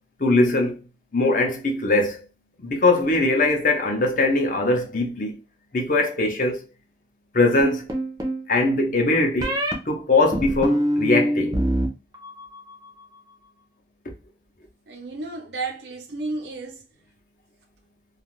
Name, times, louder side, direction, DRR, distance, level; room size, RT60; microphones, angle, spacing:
voice 1, 0.2-0.8 1.1-2.2 2.6-5.4 5.7-6.6 7.3-7.9 8.5-9.6 9.9-11.6, left 2 dB, 50° left, 0.6 m, -21 dB
sound 1, 7.6-8.4 9.4-9.7 10.3-11.9 12.1-12.7, equal, 20° right, 0.5 m, -24 dB
voice 2, 14.9-16.9, right 3 dB, 80° right, 0.7 m, -32 dB
2.5 x 2.3 x 3.1 m
head